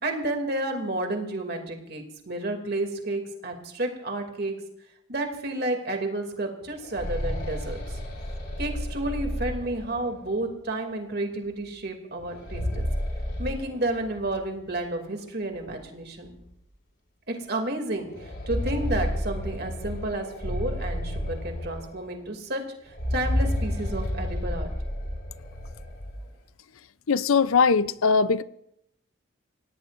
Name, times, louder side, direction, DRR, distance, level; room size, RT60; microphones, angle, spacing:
voice 1, 0.0-4.5 5.1-8.0 8.6-12.8 13.4-16.4 17.3-24.7, right 2 dB, 50° right, 2.6 m, -31 dB
sound 1, 6.6-10.4 12.2-14.4 14.7-14.8 15.7-15.8 16.3-16.4 18.0-22.2 22.9-26.3, equal, 50° left, 5.3 m, -31 dB
voice 2, 27.1-28.4, left 5 dB, 85° left, 0.6 m, -21 dB
28.0 x 17.0 x 2.6 m
head